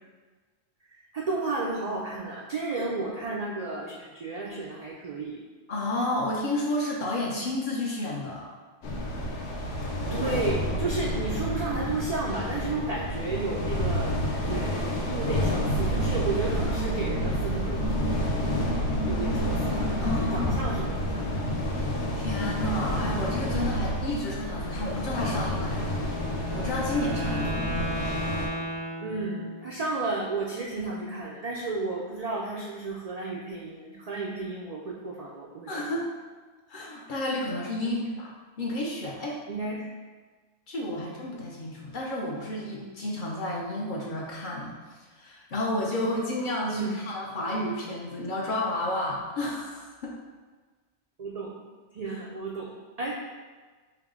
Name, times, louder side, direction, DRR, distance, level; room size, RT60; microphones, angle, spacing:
voice 1, 1.1-5.4 10.1-14.1 14.4-18.0 19.1-21.2 29.0-35.9 37.8-38.0 39.5-39.9 41.0-41.1 46.7-47.0 51.2-51.6 51.9-53.3, right 3 dB, 85° right, -3 dB, 0.3 m, -33 dB
voice 2, 5.7-8.5 20.0-20.8 22.1-25.9 26.5-27.5 35.7-36.1 36.7-38.3 38.6-39.4 40.7-50.1 52.1-52.2, left 1 dB, 55° left, -3 dB, 0.6 m, -31 dB
sound 1, 8.8-28.5, equal, 75° left, 0.9 m, -29 dB
Wind instrument woodwind instrument, 26.1-29.7, equal, 10° left, 0.5 m, -35 dB
4.6 x 2.0 x 3.6 m, 1.4 s
omnidirectional pair, 1.2 m